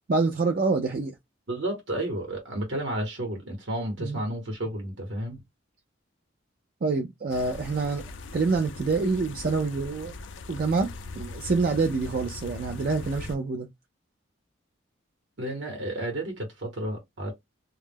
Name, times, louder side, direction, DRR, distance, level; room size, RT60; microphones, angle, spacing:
voice 1, 0.1-1.1 4.0-4.2 6.8-8.0 8.3-10.1 10.5-10.9 11.2-13.7, right 4 dB, 50° right, 0.4 m, -26 dB
voice 2, 1.5-5.4 15.4-17.3, right 1 dB, 65° right, 0.9 m, -32 dB
sound 1, 7.3-13.4, left 3 dB, 70° left, 0.4 m, -40 dB
2.2 x 2.0 x 3.3 m
head